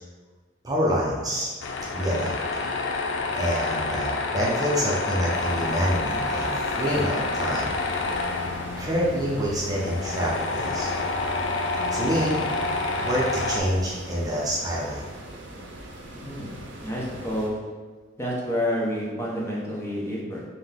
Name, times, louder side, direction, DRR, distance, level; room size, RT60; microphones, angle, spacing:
voice 1, 0.6-1.5 1.9-2.4 3.3-7.7 8.8-10.9 11.9-12.4 13.0-15.0, equal, 20° right, -5 dB, 0.6 m, -27 dB
Tools, 1.6-13.6, left 3 dB, 75° left, 0.4 m, -28 dB
sound 1, 5.3-17.5, right 1 dB, 70° right, 0.6 m, -41 dB
voice 2, 16.2-16.5 16.8-17.6 18.2-20.4, equal, 15° left, -5 dB, 0.7 m, -29 dB
3.7 x 2.8 x 3.5 m, 1.4 s
head